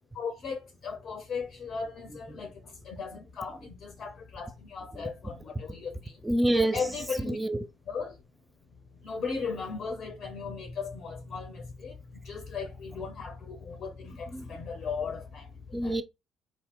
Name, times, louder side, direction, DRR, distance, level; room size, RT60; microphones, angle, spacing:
voice 1, 0.1-6.2 6.7-7.4 7.9-8.2 9.0-16.0, left 5 dB, 45° left, 0.7 m, -37 dB
voice 2, 6.2-6.8 7.2-7.7 14.3-14.5 15.7-16.0, right 1 dB, 10° right, 0.6 m, -27 dB
4.3 x 2.8 x 3.9 m
figure-of-eight pair, 50°, 0 cm